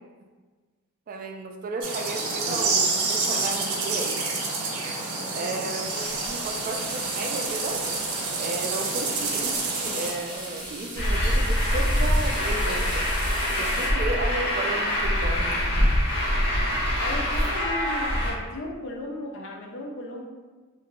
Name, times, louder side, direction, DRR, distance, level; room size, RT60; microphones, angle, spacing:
voice 1, 1.1-4.3 5.3-7.8 8.4-13.1 13.6-15.8, right 2 dB, 40° right, 4 dB, 0.3 m, -33 dB
sound 1, 1.8-10.1, right 3 dB, 85° right, 0.6 m, -28 dB
voice 2, 5.2-5.5 17.0-20.2, left 1 dB, 60° left, 0 dB, 0.5 m, -35 dB
sound 2, 5.8-13.9, right 1 dB, 20° right, 0.8 m, -38 dB
Truck, 11.0-18.3, equal, 80° left, 1.0 m, -24 dB
2.8 x 2.5 x 3.0 m, 1.4 s
head